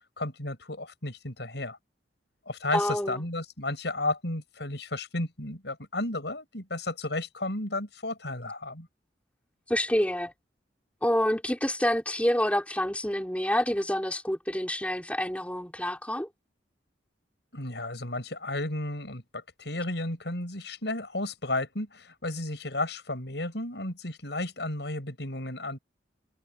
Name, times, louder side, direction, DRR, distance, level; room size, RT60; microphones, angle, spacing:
voice 1, 0.0-1.8 2.5-8.9 17.5-25.8, left 2 dB, 75° left, 6.1 m, -33 dB
voice 2, 2.7-3.2 9.7-10.3 11.0-16.3, equal, 10° left, 3.2 m, -27 dB
head